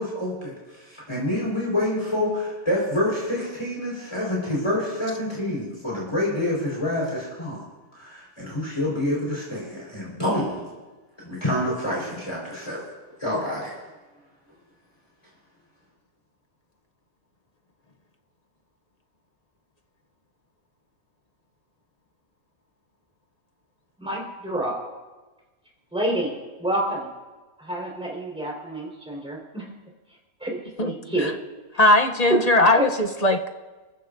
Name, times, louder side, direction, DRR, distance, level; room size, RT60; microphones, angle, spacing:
voice 1, 0.0-7.6 7.9-10.6 11.2-12.8 13.2-13.7, left 1 dB, 20° left, -5 dB, 4.6 m, -27 dB
voice 2, 24.0-24.8 25.9-26.3 26.6-27.1 27.6-29.6 30.4-31.3 32.8-32.9, right 1 dB, 5° right, -3 dB, 4.5 m, -28 dB
voice 3, 30.8-31.3 31.8-33.5, left 2 dB, 35° left, 4 dB, 0.8 m, -19 dB
25.5 x 15.5 x 2.7 m, 1.2 s
omnidirectional pair, 1.5 m